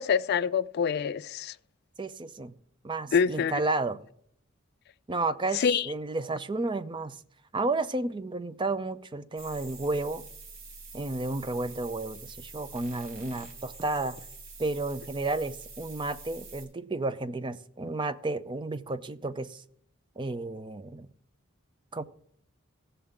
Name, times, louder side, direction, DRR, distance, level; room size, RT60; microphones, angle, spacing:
voice 1, 0.0-1.5 3.1-3.6 5.5-5.9, left 6 dB, 50° left, 0.3 m, -26 dB
voice 2, 2.0-2.5 2.8-4.0 5.1-7.2 7.5-10.2 10.9-14.3 14.6-19.6 20.2-21.1 21.9-22.0, right 2 dB, 25° right, 0.5 m, -32 dB
sound 1, 9.4-16.6, right 3 dB, 70° right, 3.8 m, -46 dB
16.5 x 6.9 x 3.7 m
head